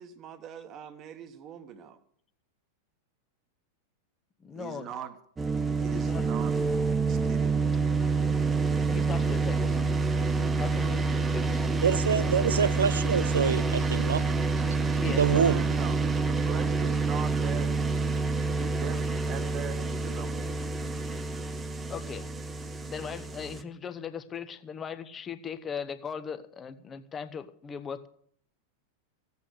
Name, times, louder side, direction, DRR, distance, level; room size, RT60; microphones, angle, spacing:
voice 1, 0.0-2.0 4.5-5.1 5.7-6.5 7.1-7.5 15.3-17.9 18.4-20.6, right 8 dB, 35° right, 1.3 m, -41 dB
voice 2, 4.4-4.9 5.9-6.2 8.9-9.8 10.6-11.7 12.1-12.3 15.0-15.7 18.7-18.8 21.9-22.3 22.9-28.1, left 7 dB, 20° left, 0.9 m, -39 dB
sound 1, 5.4-23.6, right 4 dB, 15° right, 0.9 m, -27 dB
voice 3, 11.8-14.2 15.1-15.6, right 6 dB, 70° right, 0.6 m, -26 dB
15.5 x 8.3 x 6.6 m
figure-of-eight pair, 90°, 0 cm